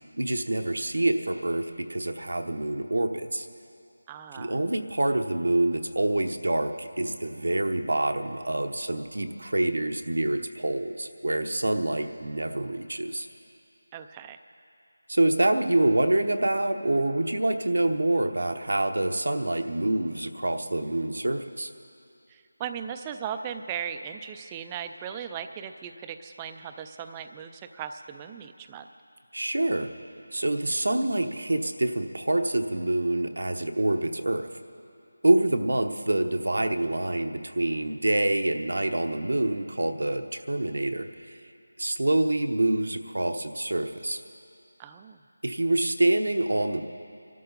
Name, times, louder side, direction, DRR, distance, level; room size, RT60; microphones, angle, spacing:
voice 1, 0.2-3.5 4.3-13.3 15.1-21.7 29.3-29.9 30.3-34.5 35.2-41.4 41.8-44.2 45.4-46.8, right 1 dB, 85° right, 6 dB, 1.0 m, -26 dB
voice 2, 4.1-4.5 13.9-14.4 22.3-28.9 44.8-45.2, right 8 dB, 10° right, 8 dB, 0.4 m, -37 dB
25.0 x 13.0 x 4.0 m, 2.6 s
figure-of-eight pair, 175°, 0 cm